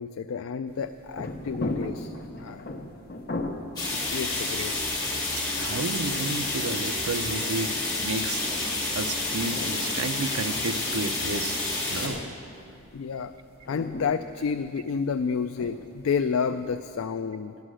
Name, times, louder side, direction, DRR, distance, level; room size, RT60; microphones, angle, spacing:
voice 1, 0.0-2.7 3.9-4.7 12.9-13.3 13.7-17.6, left 6 dB, 65° left, 9 dB, 0.3 m, -30 dB
sound 1, 0.7-16.9, left 2 dB, 45° left, 0.8 m, -40 dB
sound 2, 3.8-12.1, left 2 dB, 20° left, 2.3 m, -29 dB
voice 2, 5.3-7.8 8.0-8.4 8.9-11.6 11.9-12.2, right 3 dB, 85° right, 9 dB, 0.6 m, -32 dB
11.5 x 11.5 x 6.2 m, 2.6 s
head